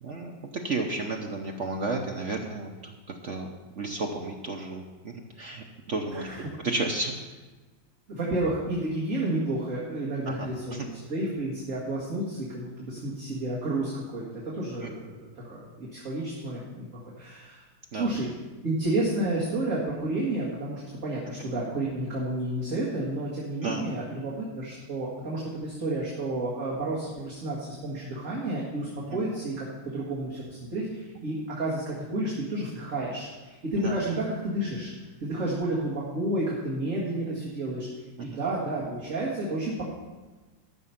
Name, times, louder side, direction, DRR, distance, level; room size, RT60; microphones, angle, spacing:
voice 1, 0.0-6.3 6.6-7.1 10.3-10.9 14.8-14.9 17.9-18.1 21.4-21.5 23.6-23.9 29.1-29.2 33.8-34.0 38.2-38.4, right 3 dB, 60° right, 2 dB, 0.7 m, -33 dB
voice 2, 6.1-6.5 8.1-16.9 17.2-17.6 17.9-18.3 18.6-30.4 30.7-34.9 35.2-37.9 38.2-39.8, right 1 dB, 40° right, -6 dB, 2.2 m, -31 dB
13.5 x 6.2 x 5.8 m, 1.3 s
omnidirectional pair, 2.3 m